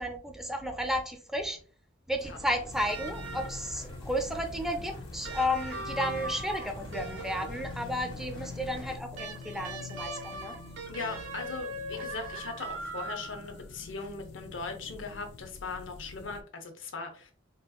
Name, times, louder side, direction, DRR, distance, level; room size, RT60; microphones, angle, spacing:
voice 1, 0.0-1.6 2.1-10.5, equal, ahead, 4 dB, 0.5 m, -33 dB
sound 1, 2.2-9.0, equal, 25° left, 0.9 m, -45 dB
sound 2, 2.7-16.4, left 4 dB, 60° left, 0.3 m, -46 dB
sound 3, 2.9-3.8 5.2-7.8 9.2-13.6 15.0-15.1, right 2 dB, 85° right, 0.9 m, -40 dB
voice 2, 10.9-17.3, left 4 dB, 80° left, 5 dB, 0.7 m, -39 dB
3.6 x 2.7 x 2.2 m, 0.39 s
head